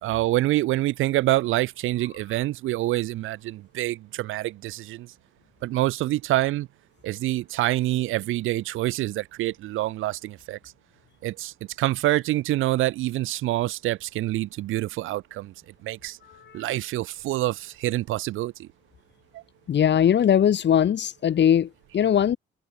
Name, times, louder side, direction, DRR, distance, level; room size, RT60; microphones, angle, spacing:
voice 1, 0.0-5.1 5.6-6.7 7.0-10.6 11.2-15.5 15.8-16.2 16.5-18.7 19.3-19.4, right 16 dB, 90° right, 1.9 m, -26 dB
voice 2, 19.7-22.4, left 9 dB, 60° left, 6.6 m, -20 dB
cardioid pair, 90°, 20 cm